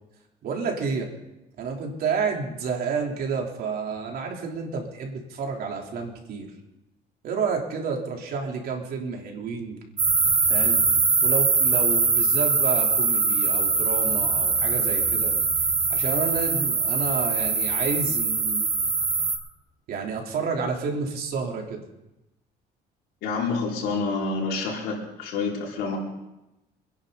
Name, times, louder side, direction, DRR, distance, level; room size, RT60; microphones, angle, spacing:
voice 1, 0.4-1.1 1.6-6.5 7.2-9.8 10.5-10.8 11.2-15.3 15.9-18.7 19.9-21.8, right 5 dB, 65° right, 0 dB, 3.7 m, -30 dB
sound 1, 10.0-19.4, right 4 dB, 35° right, 3.4 m, -22 dB
voice 2, 23.2-26.0, left 4 dB, 85° left, -3 dB, 5.3 m, -28 dB
27.5 x 11.0 x 4.1 m, 0.94 s
cardioid pair, 110°, 17 cm